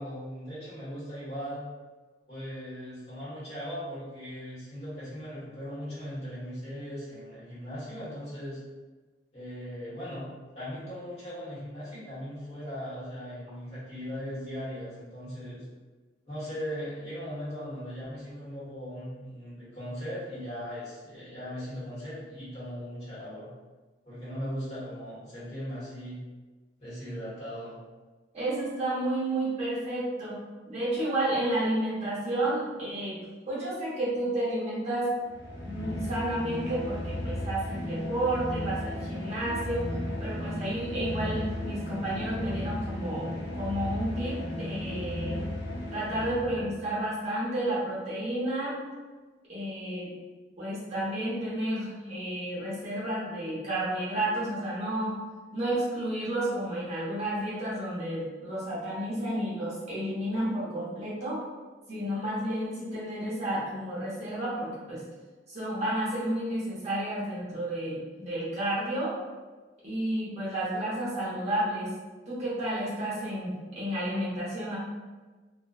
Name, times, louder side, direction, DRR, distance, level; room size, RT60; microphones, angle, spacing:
voice 1, 0.0-1.6 2.3-8.6 9.3-10.3 10.5-15.6 16.2-23.5 24.1-26.2 26.8-27.8, equal, 35° left, -11 dB, 1.1 m, -38 dB
voice 2, 28.3-30.4 30.7-35.1 35.6-39.9 40.2-45.4 45.9-48.8 49.5-50.1 50.6-55.2 55.5-61.4 61.9-65.0 65.5-69.1 69.8-71.9 72.3-74.8, right 1 dB, 35° right, -8 dB, 0.8 m, -31 dB
sound 1, 35.2-46.9, left 1 dB, 65° left, 0.6 m, -35 dB
2.5 x 2.2 x 2.3 m, 1.3 s
head